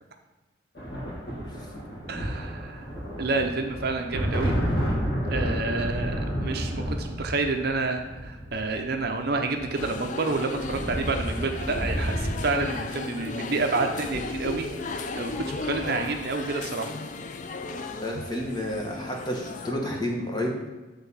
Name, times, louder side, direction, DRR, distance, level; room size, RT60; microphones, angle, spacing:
sound 1, 0.7-16.5 17.7-17.9 18.2-18.9, equal, 55° left, 1.9 m, -32 dB
voice 1, 2.1-2.9 3.2-4.5 5.3-16.9, right 3 dB, 55° right, 4 dB, 0.6 m, -29 dB
sound 2, 9.7-19.7, left 3 dB, 40° left, 0.4 m, -35 dB
voice 2, 18.0-20.5, left 1 dB, 20° left, 0 dB, 1.1 m, -30 dB
8.0 x 3.5 x 5.5 m, 1.2 s
head